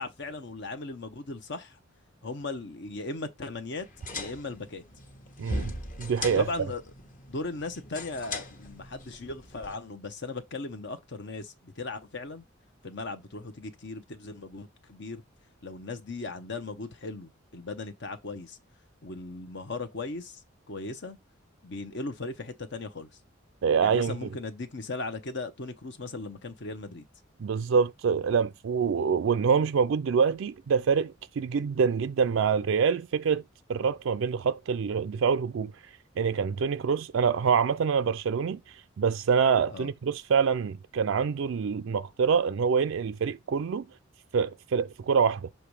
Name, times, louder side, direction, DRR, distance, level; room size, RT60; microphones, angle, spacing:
voice 1, 0.0-1.8 2.2-3.9 4.2-4.8 6.3-6.8 7.3-12.4 12.8-15.2 15.6-18.6 19.0-20.4 20.7-21.2 21.6-23.1 23.8-27.0 39.7-39.9, left 3 dB, 60° left, 0.9 m, -37 dB
sound 1, 3.8-9.8, left 1 dB, 45° left, 1.2 m, -39 dB
voice 2, 5.4-5.7 6.0-6.4 23.6-24.3 27.4-33.4 33.7-35.7 36.2-38.6 39.0-43.9 44.3-45.5, right 6 dB, 70° right, 0.4 m, -25 dB
6.8 x 3.0 x 4.8 m
head